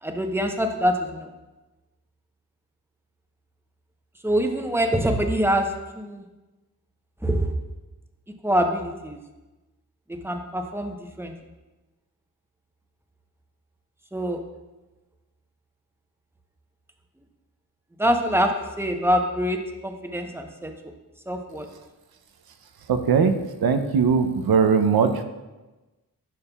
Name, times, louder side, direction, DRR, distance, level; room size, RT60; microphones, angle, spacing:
voice 1, 0.0-1.3 4.2-5.7 6.0-6.2 7.2-7.5 8.4-9.2 10.1-11.3 14.1-14.4 18.0-20.7 21.3-21.7, equal, 5° right, 4 dB, 0.9 m, -25 dB
voice 2, 22.9-23.3 23.6-25.2, right 6 dB, 70° right, 8 dB, 0.7 m, -20 dB
11.0 x 5.4 x 2.4 m, 1.1 s
cardioid pair, 40°, 38 cm